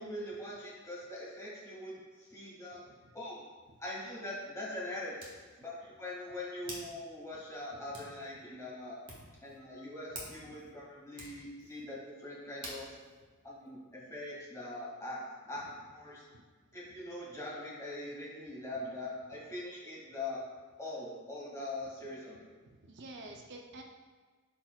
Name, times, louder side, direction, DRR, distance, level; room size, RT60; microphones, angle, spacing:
voice 1, 0.0-2.8 3.1-3.5 3.8-9.0 9.4-13.0 13.4-16.2 16.7-20.4 20.8-22.4, left 1 dB, 15° left, -6 dB, 2.0 m, -42 dB
Hands, 3.6-14.3, right 1 dB, 25° right, 1.4 m, -52 dB
voice 2, 22.6-23.8, right 2 dB, 55° right, 2 dB, 0.6 m, -50 dB
11.5 x 4.3 x 2.4 m, 1.4 s
head